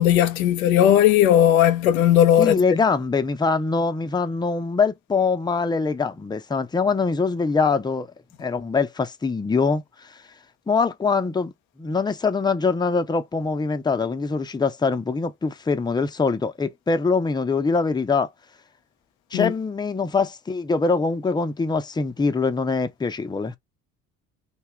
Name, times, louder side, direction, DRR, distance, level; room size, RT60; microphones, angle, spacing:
voice 1, 0.0-2.6 19.3-19.5, left 11 dB, 90° left, 0.5 m, -17 dB
voice 2, 2.4-8.1 8.4-9.8 10.7-11.5 11.8-18.3 19.3-23.5, left 4 dB, 10° left, 0.5 m, -23 dB
2.8 x 2.3 x 3.3 m
hypercardioid pair, 60°, 41 cm